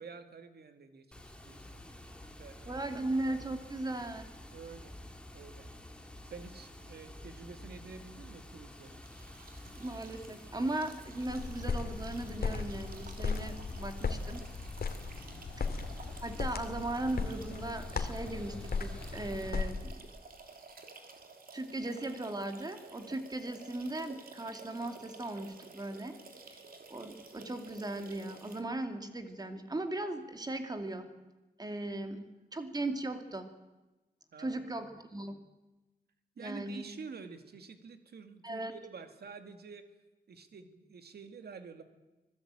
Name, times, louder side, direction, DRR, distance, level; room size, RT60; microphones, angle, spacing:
voice 1, 0.0-1.8 2.4-2.8 4.5-5.0 5.3-5.7 6.2-9.0 15.1-15.4 34.3-34.9 36.4-39.9 40.3-41.8, right 5 dB, 85° right, 8 dB, 2.2 m, -49 dB
Water, 1.1-19.5, left 1 dB, 5° left, 2.5 m, -50 dB
voice 2, 2.6-4.3 9.8-14.4 15.6-15.7 16.2-20.0 21.5-26.2 26.5-26.6 26.9-31.1 31.6-33.5 34.4-35.4 36.4-36.9 38.4-38.7, right 2 dB, 25° right, 6 dB, 2.3 m, -38 dB
sound 1, 8.8-28.6, right 4 dB, 65° right, 3.2 m, -53 dB
sound 2, 11.3-19.9, left 4 dB, 70° left, 2.2 m, -37 dB
25.0 x 17.5 x 8.9 m, 1.1 s
wide cardioid pair, 150°, 16 cm